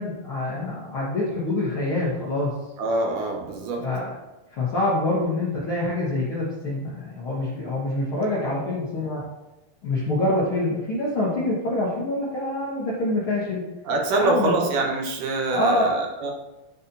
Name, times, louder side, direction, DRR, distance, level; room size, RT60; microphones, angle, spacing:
voice 1, 0.0-2.5 3.8-4.1 4.5-9.3 9.8-13.6 14.2-14.5 15.5-15.9, left 2 dB, 70° left, -7 dB, 1.2 m, -25 dB
voice 2, 2.8-3.8 13.9-16.3, right 2 dB, 70° right, 0 dB, 2.1 m, -25 dB
11.5 x 4.2 x 2.7 m, 1.0 s
omnidirectional pair, 4.5 m